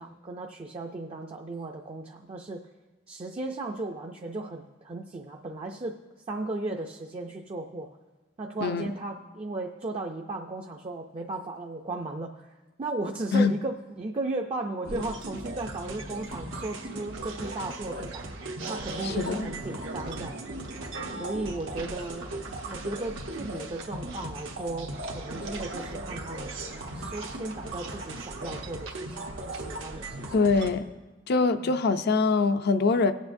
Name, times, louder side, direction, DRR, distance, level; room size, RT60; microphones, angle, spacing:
voice 1, 0.0-2.7 3.1-6.0 6.3-7.9 8.4-12.5 12.8-18.3 18.7-20.4 21.2-22.3 22.7-30.5 31.6-31.8, right 2 dB, 30° right, 2 dB, 0.4 m, -36 dB
voice 2, 8.6-8.9 13.3-13.5 19.0-19.5 30.3-30.9 31.3-33.1, left 4 dB, 55° left, 11 dB, 0.4 m, -23 dB
sound 1, 14.8-30.7, right 2 dB, 85° right, 1.1 m, -37 dB
18.5 x 8.2 x 2.6 m, 1.2 s
head